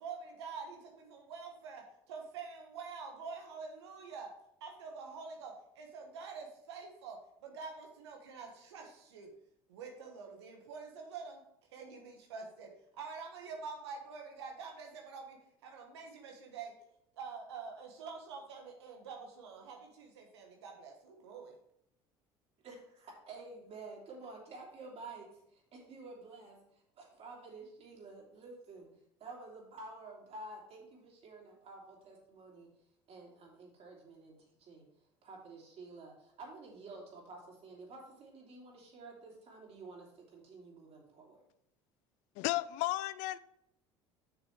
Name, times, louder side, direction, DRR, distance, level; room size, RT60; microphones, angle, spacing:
voice 1, 0.0-4.3 4.6-9.3 9.7-11.4 11.7-16.8 17.2-21.5, right 5 dB, 85° right, 1.2 m, -46 dB
voice 2, 22.6-26.6 27.0-28.9 29.2-32.7 33.1-34.3 34.6-34.9 35.2-41.4, right 3 dB, 50° right, 3.2 m, -50 dB
voice 3, 42.4-43.4, left 17 dB, 65° left, 0.4 m, -33 dB
7.0 x 6.2 x 4.7 m
hypercardioid pair, 70°, 14 cm